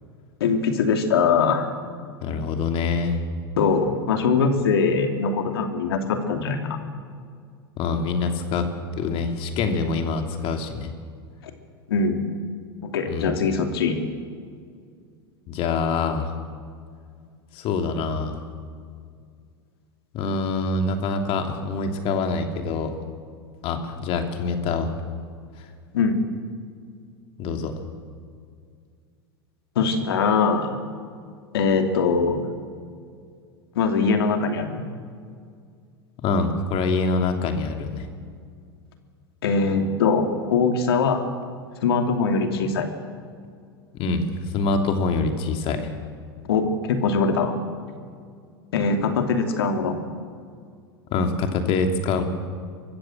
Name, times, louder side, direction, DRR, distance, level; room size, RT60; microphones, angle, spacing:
voice 1, 0.4-1.7 3.6-6.8 11.9-12.2 12.8-14.0 25.9-26.2 29.8-30.7 31.5-32.4 33.7-34.8 39.4-41.3 41.8-42.9 46.4-47.5 48.7-49.9, left 5 dB, 70° left, 5 dB, 2.7 m, -22 dB
voice 2, 2.2-3.2 7.8-8.7 9.0-10.9 13.1-13.4 15.5-16.3 17.5-18.4 20.1-22.9 23.6-24.9 27.4-27.7 36.2-38.1 43.9-45.9 51.1-52.2, left 4 dB, 45° left, 5 dB, 2.8 m, -25 dB
23.5 x 15.0 x 7.6 m, 2.1 s
hypercardioid pair, 90°, 13 cm